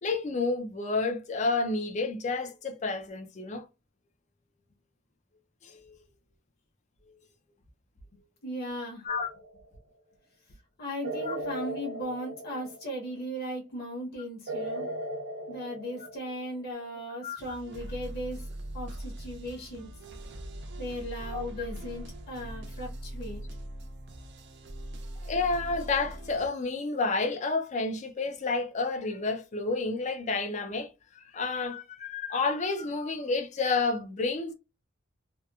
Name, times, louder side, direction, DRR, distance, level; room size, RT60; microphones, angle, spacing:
voice 1, 0.0-3.6 5.6-5.9 9.0-9.3 11.3-11.4 17.2-17.4 21.3-21.4 25.3-30.9 31.2-34.5, left 3 dB, 40° left, 0.4 m, -30 dB
voice 2, 8.4-9.0 10.8-14.9 15.5-18.4 18.7-19.9 20.8-23.4, equal, 55° left, 0.9 m, -37 dB
sound 1, 9.1-9.7 11.0-13.1 14.5-16.5, right 1 dB, 85° right, 0.9 m, -37 dB
sound 2, 17.4-26.5, right 1 dB, 60° right, 0.5 m, -41 dB
2.8 x 2.1 x 2.3 m
head